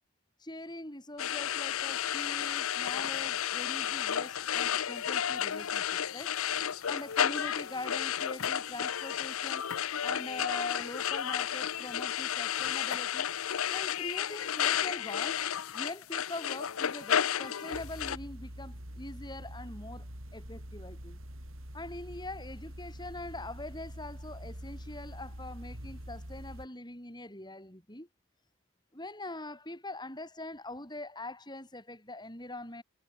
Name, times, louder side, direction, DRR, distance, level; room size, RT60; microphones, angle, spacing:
voice 1, 0.4-6.3 6.9-9.6 10.0-13.3 13.7-15.4 15.7-20.1 20.3-21.2 21.7-28.1 28.9-32.8, left 2 dB, 20° left, 7.8 m, -43 dB
sound 1, 1.2-18.2, left 9 dB, 70° left, 0.6 m, -32 dB
sound 2, 17.7-26.7, equal, 65° right, 7.9 m, -45 dB
head